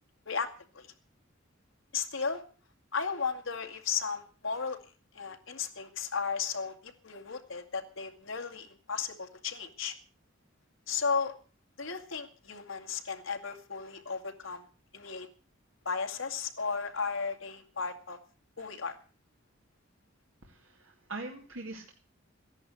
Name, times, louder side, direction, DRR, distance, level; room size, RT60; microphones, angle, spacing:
voice 1, 0.3-0.9 1.9-2.4 2.9-4.8 5.1-9.9 10.9-11.3 11.8-14.6 14.9-15.3 15.9-18.2 18.6-19.0, left 5 dB, 75° left, 5 dB, 2.3 m, -35 dB
voice 2, 20.4-21.9, right 2 dB, 75° right, 1 dB, 2.3 m, -42 dB
15.0 x 10.5 x 7.7 m, 0.39 s
head